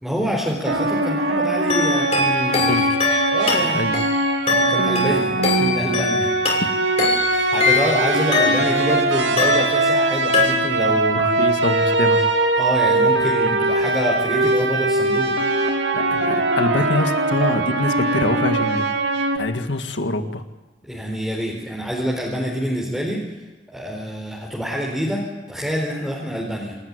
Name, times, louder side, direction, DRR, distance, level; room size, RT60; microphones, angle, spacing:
voice 1, 0.0-2.8 3.3-3.9 4.5-6.3 7.3-11.2 12.6-15.4 20.8-23.2 23.7-26.7, equal, ahead, -3 dB, 4.2 m, -26 dB
sound 1, 0.6-19.4, right 2 dB, 85° right, 2.6 m, -21 dB
sound 2, 1.7-8.9 9.4-10.1 10.3-11.0, left 4 dB, 35° left, 6.1 m, -23 dB
voice 2, 3.7-4.0 11.1-12.2 15.9-18.9 19.3-20.4, left 1 dB, 85° left, 7 dB, 1.8 m, -24 dB
27.0 x 14.5 x 9.7 m, 1.2 s
head